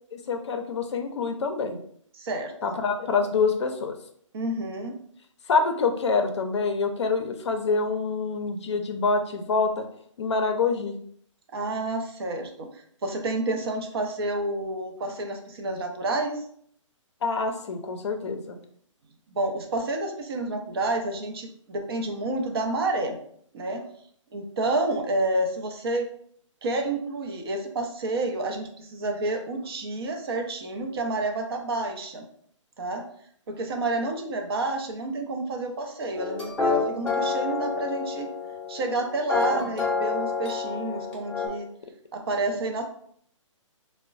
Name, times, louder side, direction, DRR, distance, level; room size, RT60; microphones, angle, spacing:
voice 1, 0.1-1.8 2.6-4.0 5.5-9.7 10.2-10.9 17.2-18.6 39.5-39.7, left 4 dB, 60° left, 5 dB, 0.5 m, -26 dB
voice 2, 2.1-2.8 4.3-5.0 11.5-12.7 13.0-16.4 19.3-23.2 23.5-23.9 24.3-26.1 26.6-32.3 32.8-33.1 33.5-38.3 38.7-41.7 42.1-42.8, right 2 dB, 50° right, 4 dB, 0.5 m, -29 dB
sound 1, 36.1-41.5, left 4 dB, 5° left, 0.7 m, -28 dB
3.7 x 2.1 x 2.3 m, 0.63 s
hypercardioid pair, 145°, 17 cm